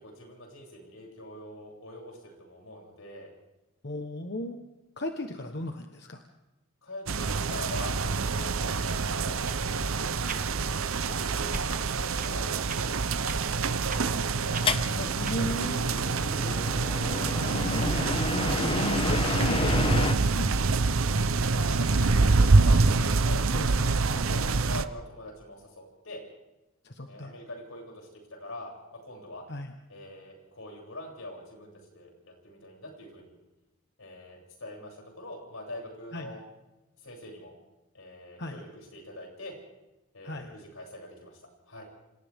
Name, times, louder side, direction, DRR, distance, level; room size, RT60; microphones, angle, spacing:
voice 1, 0.0-3.3 6.8-10.4 10.9-13.0 13.3-14.1 17.3-17.7 21.6-23.5 24.2-26.2 27.1-29.4 29.9-33.4 34.0-36.4 37.0-37.5 37.9-39.6 40.1-41.8, left 1 dB, 85° left, -1 dB, 7.7 m, -44 dB
voice 2, 3.8-4.6 5.0-6.2 14.9-15.9 17.5-20.5 23.5-24.3 26.8-27.3 29.5-29.7 36.1-36.3 38.4-38.6 40.2-40.5, left 1 dB, 55° left, 5 dB, 1.3 m, -35 dB
sound 1, 7.1-24.8, right 3 dB, 80° right, 0.8 m, -26 dB
sound 2, 9.4-9.6 10.2-10.4 11.5-11.7 12.2-12.3 12.7-12.8 13.2-13.4 13.9-14.0 14.5-14.7 15.2-15.4, right 5 dB, 40° right, 1.5 m, -38 dB
sound 3, 14.6-20.1, left 3 dB, 25° left, 0.7 m, -32 dB
28.0 x 27.0 x 3.7 m, 1.0 s
head